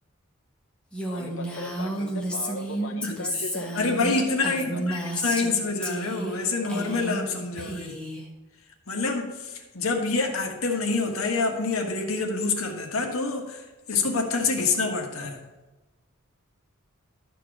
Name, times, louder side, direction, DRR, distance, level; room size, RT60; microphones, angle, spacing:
Female speech woman speaking, 0.9-5.5 5.8-6.4 6.6-7.3 7.6-8.2, right 1 dB, 5° left, 1.4 m, -32 dB
voice 1, 1.1-4.8, left 2 dB, 65° left, 2 dB, 1.2 m, -37 dB
voice 2, 3.0-3.5 3.7-8.0 8.9-15.4, left 3 dB, 85° left, 2 dB, 1.5 m, -27 dB
12.5 x 4.6 x 6.0 m, 1.1 s
head